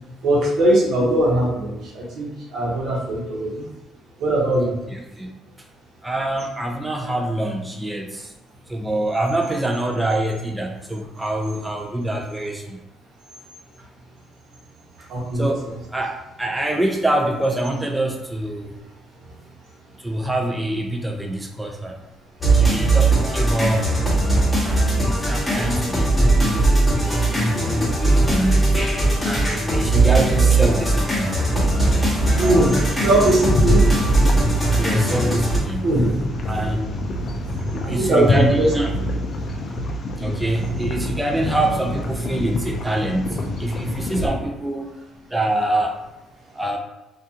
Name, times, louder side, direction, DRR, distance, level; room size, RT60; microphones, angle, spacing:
voice 1, 0.2-3.6 4.2-4.8 15.1-15.5 32.4-32.7 33.0-33.8 35.8-36.1 37.8-38.7, right 1 dB, 70° right, -5 dB, 0.9 m, -20 dB
voice 2, 4.6-5.4 6.0-8.2 8.7-12.8 15.4-15.7 15.9-18.7 20.0-22.0 22.5-23.9 24.6-27.4 27.7-28.6 29.2-31.4 32.4-32.8 34.8-35.9 36.5-36.9 37.7-38.9 40.2-44.9 45.3-46.0 46.5-46.8, right 1 dB, 10° right, 1 dB, 0.5 m, -25 dB
sound 1, 22.4-35.6, right 2 dB, 15° left, 0.9 m, -19 dB
sound 2, 31.5-44.3, left 1 dB, 50° left, 0.4 m, -27 dB
2.4 x 2.3 x 2.8 m, 1.0 s
cardioid pair, 85°, 0 cm